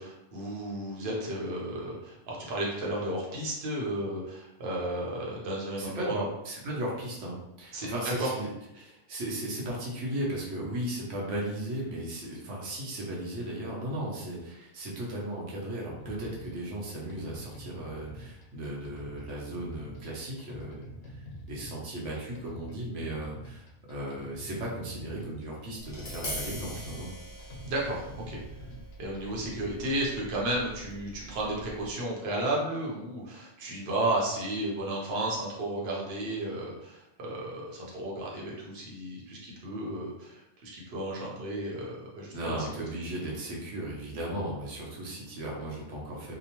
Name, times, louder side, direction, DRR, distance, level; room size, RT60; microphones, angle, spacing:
voice 1, 0.0-6.3 7.7-7.9 8.2-8.3 27.6-28.4 29.0-42.7, right 1 dB, 65° right, -4 dB, 0.9 m, -33 dB
voice 2, 5.7-8.5 8.8-27.1 42.3-46.3, right 1 dB, 90° right, -3 dB, 1.1 m, -36 dB
sound 1, 16.0-29.9, equal, 85° left, 0.9 m, -46 dB
Tap, 25.8-31.9, equal, 55° left, 0.9 m, -43 dB
2.8 x 2.0 x 2.8 m, 0.89 s
omnidirectional pair, 1.2 m